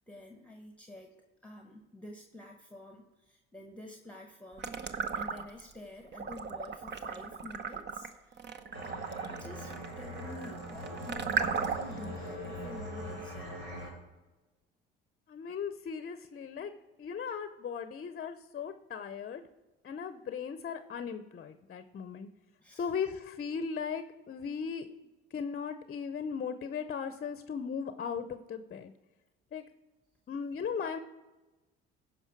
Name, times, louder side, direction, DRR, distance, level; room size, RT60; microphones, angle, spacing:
voice 1, 0.1-1.2 1.4-8.5 9.3-13.5 22.6-22.9, left 1 dB, 5° left, 4 dB, 1.1 m, -49 dB
sound 1, 4.6-5.7 6.1-12.0, right 6 dB, 35° right, 0.9 m, -36 dB
sound 2, 8.7-13.9, equal, 85° right, 3.4 m, -42 dB
voice 2, 15.3-16.7 17.0-19.4 19.8-22.3 22.7-24.9 25.3-28.9 29.5-29.6 30.3-31.0, left 6 dB, 35° left, 10 dB, 0.7 m, -37 dB
15.5 x 5.6 x 4.7 m, 1.1 s
hypercardioid pair, 70°, 29 cm